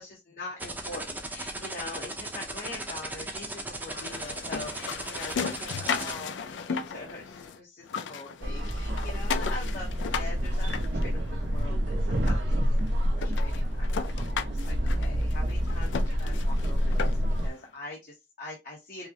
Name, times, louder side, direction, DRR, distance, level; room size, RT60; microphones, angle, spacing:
voice 1, 0.0-17.2 17.4-19.1, left 2 dB, 50° left, -2 dB, 0.8 m, -43 dB
sound 1, 0.6-6.1, right 2 dB, 10° right, 0.6 m, -36 dB
sound 2, 3.9-7.6 7.8-11.6 12.3-12.4 12.8-12.9 13.2-17.4, left 6 dB, 85° left, 0.4 m, -36 dB
sound 3, 8.4-17.5, equal, 85° right, 0.7 m, -27 dB
4.8 x 2.0 x 2.7 m, 0.22 s
head